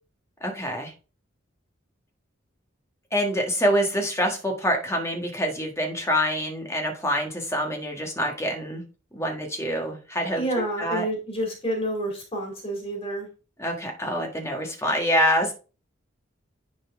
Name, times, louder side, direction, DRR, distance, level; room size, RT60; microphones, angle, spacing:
voice 1, 0.4-0.9 3.1-8.8 9.1-11.0 13.6-15.5, equal, 15° left, 2 dB, 1.5 m, -26 dB
voice 2, 10.3-13.3, right 1 dB, 30° left, 0 dB, 2.5 m, -29 dB
10.5 x 4.3 x 3.6 m, 0.34 s
head